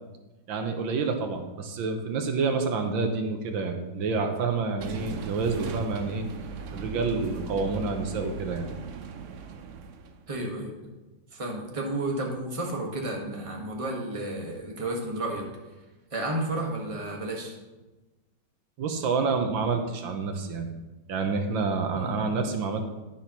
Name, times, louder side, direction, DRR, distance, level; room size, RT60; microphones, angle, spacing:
voice 1, 0.5-6.3 6.7-8.7 18.8-20.7 21.1-22.8, right 4 dB, 85° right, 5 dB, 1.7 m, -28 dB
sound 1, 4.8-10.3, right 5 dB, 70° right, 0.7 m, -38 dB
voice 2, 10.3-10.7 11.3-15.4 16.1-17.6 21.9-22.2, right 1 dB, 20° right, 0 dB, 1.4 m, -32 dB
11.0 x 10.0 x 3.0 m, 1.1 s
omnidirectional pair, 2.1 m